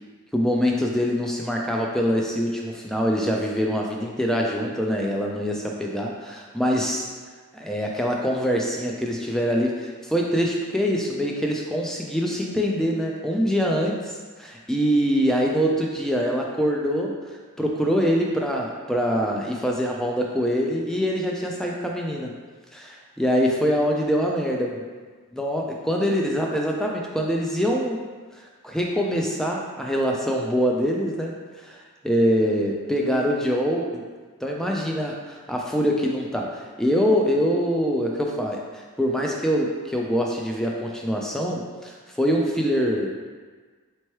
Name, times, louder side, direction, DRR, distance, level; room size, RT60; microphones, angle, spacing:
voice 1, 0.3-7.1 7.5-22.4 22.7-24.7 25.3-28.0 28.6-31.3 31.6-31.8 32.0-34.1 34.4-38.6 39.0-43.1, equal, ahead, -1 dB, 0.3 m, -24 dB
4.3 x 2.9 x 3.1 m, 1.5 s
head